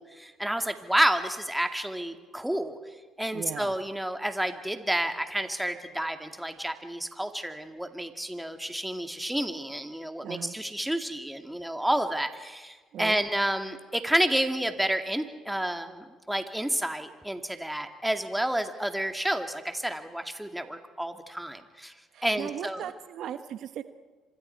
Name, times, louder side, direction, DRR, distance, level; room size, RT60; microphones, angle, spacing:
voice 1, 0.0-2.8 3.2-21.9 22.2-22.9, right 1 dB, 5° right, 6 dB, 2.3 m, -30 dB
voice 2, 3.3-3.7 10.2-10.5 12.9-13.2 22.1-23.8, right 10 dB, 65° right, 11 dB, 1.1 m, -37 dB
30.0 x 25.5 x 4.6 m, 1.4 s
supercardioid pair, 65°, 0 cm